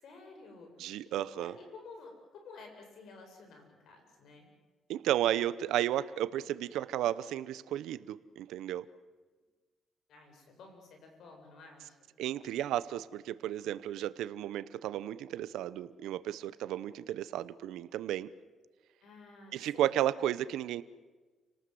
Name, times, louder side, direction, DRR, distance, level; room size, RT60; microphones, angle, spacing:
voice 1, 0.0-4.5 10.1-12.0 19.0-20.0, left 4 dB, 75° left, 3 dB, 7.6 m, -52 dB
voice 2, 0.8-1.5 4.9-8.9 12.2-18.3 19.5-20.8, right 12 dB, 85° right, 15 dB, 0.9 m, -33 dB
29.5 x 19.0 x 7.8 m, 1.3 s
cardioid pair, 90°, 0 cm